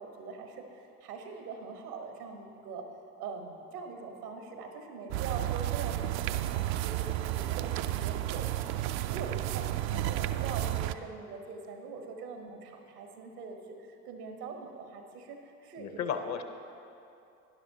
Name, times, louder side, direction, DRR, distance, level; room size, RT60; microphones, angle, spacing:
voice 1, 0.0-2.8 3.2-8.7 9.1-16.3, right 4 dB, 85° right, 4 dB, 1.2 m, -43 dB
sound 1, 5.1-10.9, right 14 dB, 60° right, 0.5 m, -32 dB
voice 2, 15.8-16.4, left 7 dB, 35° left, 8 dB, 0.8 m, -35 dB
12.0 x 10.5 x 2.8 m, 2.7 s
hypercardioid pair, 65°, 45 cm